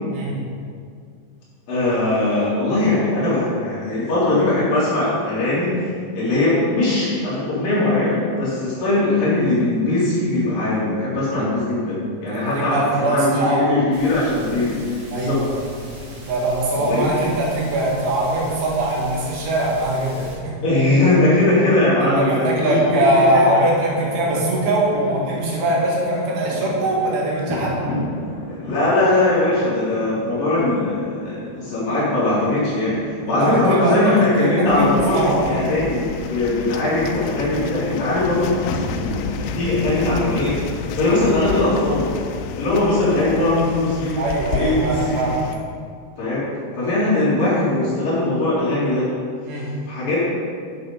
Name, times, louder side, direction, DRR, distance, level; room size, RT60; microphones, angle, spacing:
voice 1, 1.7-14.8 15.1-15.4 16.7-17.2 20.6-22.8 23.1-23.4 28.5-38.6 38.9-40.6 40.9-42.1 42.5-44.2 44.5-45.3 46.2-46.4 46.8-49.1 49.9-50.2, left 2 dB, 50° left, -9 dB, 4.8 m, -20 dB
voice 2, 12.3-13.7 15.1-15.5 16.3-20.6 22.0-27.8 33.4-34.9 35.1-35.6 44.2-45.4 49.5-49.7, right 1 dB, 75° right, -4 dB, 4.5 m, -21 dB
sound 1, 13.9-20.4, equal, 40° right, 3.9 m, -39 dB
sound 2, 22.0-40.5, left 2 dB, 70° left, 1.5 m, -35 dB
sound 3, 34.7-45.6, left 5 dB, 90° left, 3.1 m, -31 dB
11.0 x 7.5 x 5.4 m, 2.1 s
omnidirectional pair, 5.5 m